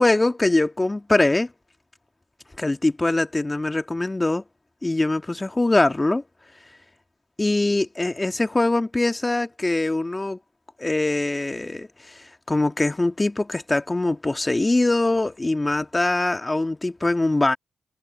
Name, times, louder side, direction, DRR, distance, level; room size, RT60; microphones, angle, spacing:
voice 1, 0.0-1.5 2.6-4.4 4.8-6.2 7.4-10.4 10.8-17.6, left 2 dB, 25° left, 2.2 m, -22 dB
supercardioid pair, 40°, 0 cm